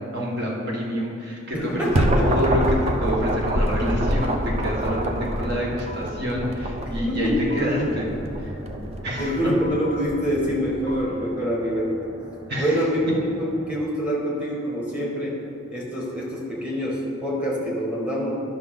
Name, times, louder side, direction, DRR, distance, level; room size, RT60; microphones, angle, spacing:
voice 1, 0.0-8.1 8.4-8.5 9.0-9.3 12.5-12.8, equal, 55° right, -3 dB, 1.6 m, -27 dB
voice 2, 1.5-2.4 6.8-7.8 9.2-12.0 12.6-15.4 15.7-18.3, equal, 5° right, -4 dB, 1.7 m, -26 dB
sound 1, 1.5-11.0, right 1 dB, 30° right, 0.5 m, -26 dB
sound 2, 2.5-3.0 3.8-6.3 7.1-8.0 8.8-11.3, left 2 dB, 35° left, 0.3 m, -41 dB
sound 3, 5.0-13.8, right 1 dB, 75° right, 1.3 m, -44 dB
11.0 x 6.0 x 3.7 m, 2.5 s
head